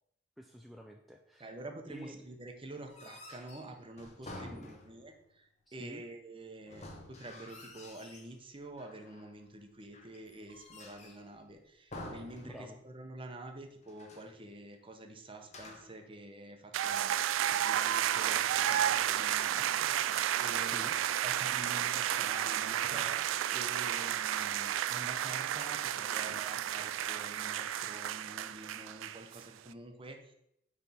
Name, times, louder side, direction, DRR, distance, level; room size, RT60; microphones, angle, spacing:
voice 1, 0.4-1.5 1.9-2.2 4.2-4.8 5.7-6.0 12.4-12.8 20.6-21.0, equal, ahead, 1 dB, 0.4 m, -49 dB
voice 2, 1.4-17.2 17.5-20.1 20.4-30.3, right 2 dB, 25° right, 5 dB, 0.8 m, -48 dB
sound 1, 2.8-5.2 6.7-8.4 8.8-9.4 9.9-11.3 11.9-13.0 13.3-13.4 13.8-14.4 15.4-16.0, left 2 dB, 35° left, 1.0 m, -50 dB
sound 2, 16.7-29.4, right 11 dB, 85° right, 0.3 m, -32 dB
9.2 x 3.5 x 4.3 m, 0.76 s
head